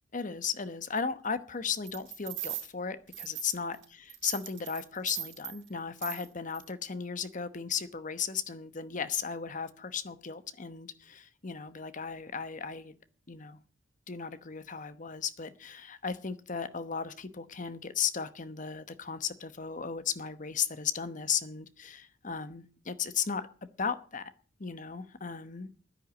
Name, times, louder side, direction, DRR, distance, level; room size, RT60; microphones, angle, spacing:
voice 1, 0.1-3.8 4.2-12.9 13.3-13.6 14.1-23.5 23.8-24.3 24.6-25.7, left 6 dB, 45° left, 13 dB, 1.0 m, -35 dB
sound 1, 1.9-2.7 3.1-3.8 4.1-5.6 6.0-6.3 6.5-6.7, right 13 dB, 75° right, 4.4 m, -39 dB
10.0 x 10.0 x 8.7 m, 0.42 s
head